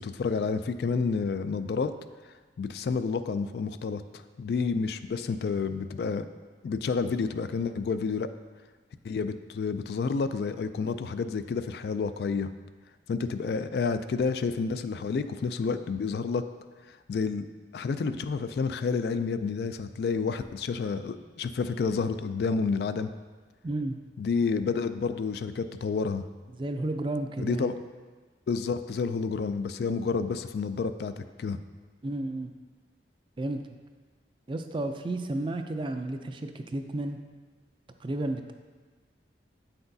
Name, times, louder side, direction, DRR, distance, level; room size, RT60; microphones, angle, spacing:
voice 1, 0.0-1.9 2.6-4.0 4.4-6.3 6.6-8.3 9.0-12.5 13.1-16.4 16.9-17.5 17.7-23.1 24.2-26.2 27.4-27.8 28.5-31.6, left 5 dB, 65° left, 11 dB, 0.3 m, -29 dB
voice 2, 23.6-24.0 26.6-27.7 32.0-32.5 33.4-33.6 34.5-37.2 38.0-38.5, right 2 dB, 30° right, 7 dB, 0.4 m, -32 dB
8.6 x 5.8 x 2.7 m, 1.4 s
head